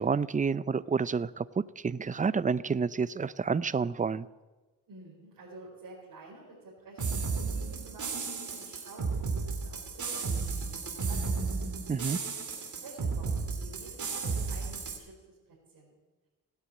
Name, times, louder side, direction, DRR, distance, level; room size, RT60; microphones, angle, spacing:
voice 1, 0.0-1.5 1.8-4.3 11.9-12.2, right 5 dB, 25° right, 17 dB, 0.5 m, -29 dB
voice 2, 4.9-11.6 12.6-16.0, right 2 dB, 85° right, -5 dB, 4.8 m, -51 dB
sound 1, 7.0-15.0, right 4 dB, 60° right, 2.8 m, -33 dB
18.5 x 9.1 x 8.6 m, 1.2 s
cardioid pair, 95°, 34 cm